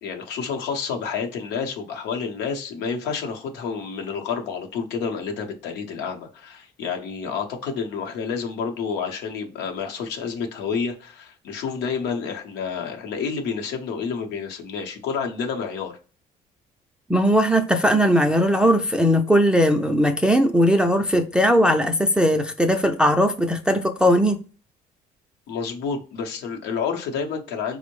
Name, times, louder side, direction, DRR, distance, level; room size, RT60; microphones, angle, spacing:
voice 1, 0.0-16.0 25.5-27.8, left 6 dB, 85° left, 0.8 m, -29 dB
voice 2, 17.1-24.4, equal, 5° right, 0.3 m, -19 dB
4.3 x 2.0 x 3.0 m
cardioid pair, 110°, 17 cm